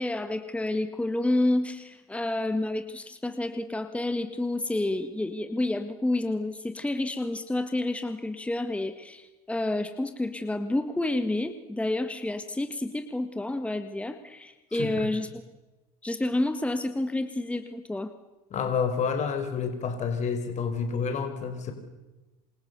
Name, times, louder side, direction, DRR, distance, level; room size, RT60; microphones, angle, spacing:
voice 1, 0.0-15.4 16.0-18.1, left 2 dB, 5° left, 9 dB, 1.8 m, -29 dB
voice 2, 14.7-15.1 18.5-21.7, left 6 dB, 40° left, 7 dB, 5.2 m, -29 dB
28.0 x 26.0 x 7.1 m, 1.1 s
supercardioid pair, 115°, 19 cm